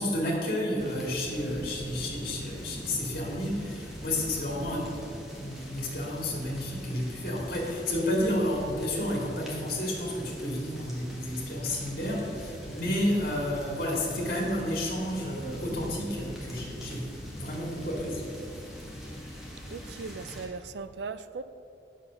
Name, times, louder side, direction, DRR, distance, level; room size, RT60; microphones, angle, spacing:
voice 1, 0.0-18.4, left 1 dB, 50° left, -3 dB, 2.0 m, -31 dB
sound 1, 0.8-20.5, equal, ahead, 1.5 m, -42 dB
voice 2, 19.7-21.4, right 4 dB, 70° right, 13 dB, 0.4 m, -38 dB
8.7 x 6.5 x 6.3 m, 2.9 s
head